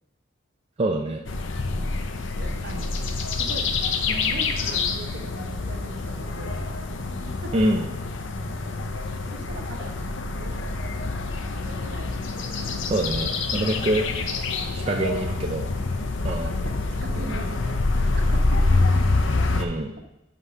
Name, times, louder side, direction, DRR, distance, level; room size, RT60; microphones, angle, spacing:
voice 1, 0.8-1.2 7.5-7.9 12.9-14.1 14.7-15.7 16.2-16.5 19.6-19.9, right 1 dB, 30° right, 1 dB, 0.5 m, -25 dB
sound 1, 1.3-19.7, left 3 dB, 65° left, 0.7 m, -26 dB
voice 2, 2.4-2.9 3.3-6.6 7.3-7.7 9.3-9.9 10.4-10.5 11.6-12.2 12.6-12.8 15.8-15.9 16.3-19.2, right 2 dB, 60° right, 4 dB, 0.9 m, -40 dB
5.6 x 4.8 x 6.5 m, 0.90 s
head